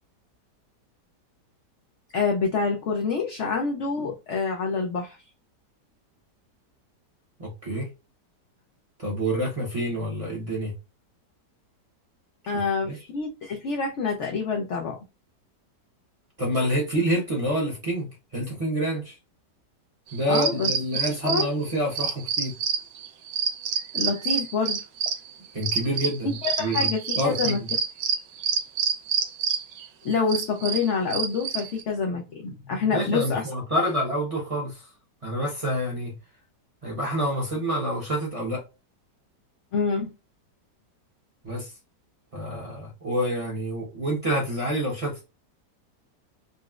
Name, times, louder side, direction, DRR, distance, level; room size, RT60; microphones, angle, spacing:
voice 1, 2.1-5.2 12.5-15.0 20.3-20.7 21.2-21.5 23.9-24.8 26.4-27.6 30.0-33.5 39.7-40.1, left 5 dB, 80° left, 0.6 m, -27 dB
voice 2, 7.4-7.9 9.0-10.7 12.4-12.5 12.8-13.0 16.4-19.2 20.1-22.5 25.5-26.3 26.6-26.9 27.2-27.7 32.9-34.8 35.2-36.1 36.8-38.6 41.4-41.7 42.3-45.3, equal, 30° right, 0.7 m, -27 dB
sound 1, 20.1-31.8, right 6 dB, 70° right, 1.1 m, -27 dB
3.9 x 2.0 x 2.3 m
omnidirectional pair, 1.8 m